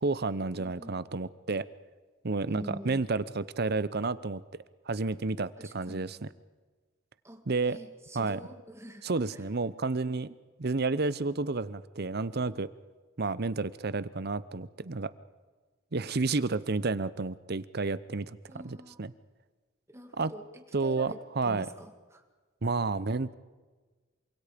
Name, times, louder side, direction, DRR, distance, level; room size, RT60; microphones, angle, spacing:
voice 1, 0.0-1.6 2.2-4.4 4.9-6.2 7.5-7.8 8.1-8.4 9.0-12.7 13.2-15.1 15.9-18.4 18.6-19.1 20.2-20.3 20.7-21.7 22.6-23.3, right 3 dB, 50° right, 16 dB, 0.8 m, -31 dB
voice 2, 0.6-1.0 2.5-3.0 5.6-6.0 7.2-9.4 18.5-19.0 19.9-22.2, equal, 15° right, 5 dB, 2.1 m, -46 dB
27.5 x 25.5 x 5.2 m, 1.3 s
head